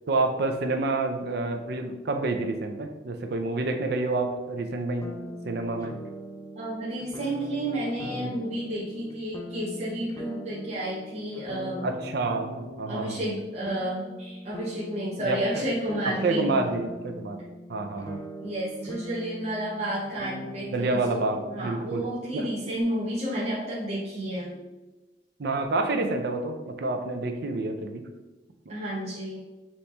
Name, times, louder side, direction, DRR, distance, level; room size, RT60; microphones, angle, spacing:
voice 1, 0.1-5.1 5.5-5.9 8.0-8.3 11.8-13.2 15.2-15.6 16.1-17.4 17.7-18.2 20.7-22.0 22.3-22.5 25.4-28.1, right 2 dB, 65° right, 6 dB, 0.5 m, -28 dB
sound 1, 5.0-22.8, equal, 20° left, 0.3 m, -42 dB
voice 2, 6.6-11.8 12.9-16.6 18.4-24.6 28.7-29.4, right 1 dB, 40° right, -7 dB, 0.8 m, -31 dB
4.2 x 3.0 x 3.3 m, 1.1 s
head